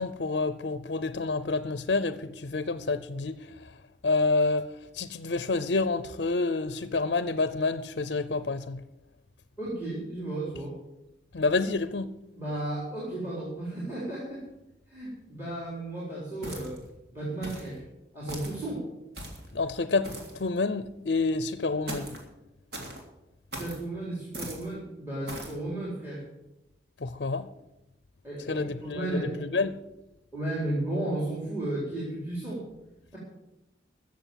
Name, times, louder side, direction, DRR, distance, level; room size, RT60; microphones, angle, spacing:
voice 1, 0.0-3.4 4.0-8.8 11.3-12.1 19.5-22.1 27.0-27.5 28.5-29.8, left 3 dB, 60° left, 0.6 m, -28 dB
voice 2, 9.6-10.7 12.3-14.4 14.9-16.8 17.1-17.8 18.1-18.8 23.6-26.2 28.2-29.5 30.3-32.6, right 1 dB, 10° right, 3.8 m, -34 dB
sound 1, 16.4-16.9 17.4-17.7 18.3-18.6 19.1-19.5 20.0-20.4 21.9-22.2 22.7-23.0 23.5-23.8 24.3-24.7 25.3-25.6, right 1 dB, 55° right, 3.2 m, -39 dB
14.5 x 7.5 x 7.5 m
head